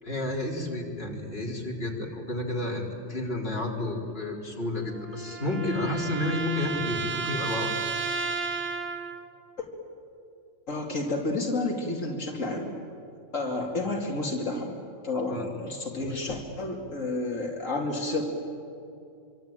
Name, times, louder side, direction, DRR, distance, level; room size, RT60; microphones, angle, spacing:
voice 1, 0.0-7.7 13.7-13.9 15.3-15.5 16.0-16.3, left 1 dB, 50° left, -2 dB, 4.3 m, -31 dB
sound 1, 4.6-9.4, right 5 dB, 70° right, 1.6 m, -33 dB
voice 2, 10.7-12.7 13.3-14.8 15.0-18.2, left 2 dB, 90° left, -1 dB, 3.1 m, -30 dB
26.0 x 25.0 x 9.0 m, 2.7 s
omnidirectional pair, 1.3 m